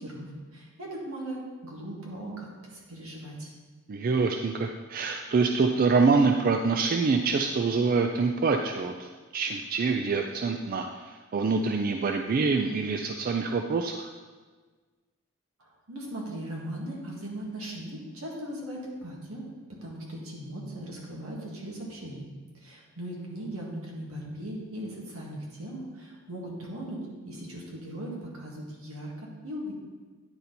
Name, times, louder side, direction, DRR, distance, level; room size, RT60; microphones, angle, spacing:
voice 1, 0.0-3.5 15.6-19.4 19.7-22.3 22.5-27.0 27.3-29.7, right 1 dB, 80° right, -3 dB, 1.8 m, -39 dB
voice 2, 3.9-14.1, right 4 dB, 40° right, 4 dB, 0.3 m, -26 dB
9.7 x 4.3 x 4.0 m, 1.4 s
head